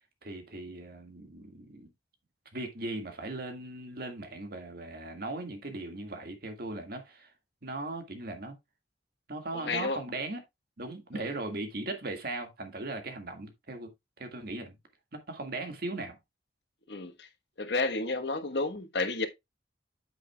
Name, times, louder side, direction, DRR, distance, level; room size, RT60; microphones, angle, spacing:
voice 1, 0.2-1.9 2.5-7.3 7.6-8.6 9.3-10.4 10.8-13.9 14.2-14.8 15.3-16.2, right 2 dB, 55° right, 1.9 m, -38 dB
voice 2, 9.5-10.0 11.1-11.3 16.9-17.3 17.6-19.3, left 3 dB, 65° left, 1.2 m, -31 dB
8.7 x 7.8 x 2.3 m
head